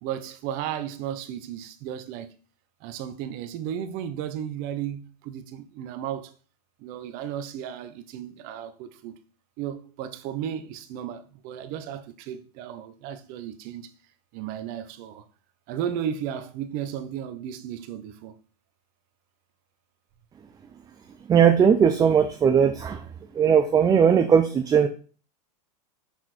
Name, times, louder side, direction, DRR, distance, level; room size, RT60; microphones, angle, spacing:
voice 1, 0.0-2.3 2.8-6.3 6.8-9.2 9.6-13.9 14.3-15.2 15.7-18.3, right 9 dB, 45° right, 1.1 m, -34 dB
voice 2, 21.3-23.0 23.3-24.9, right 7 dB, 20° right, 0.6 m, -18 dB
6.5 x 5.8 x 4.4 m
hypercardioid pair, 120°, 20 cm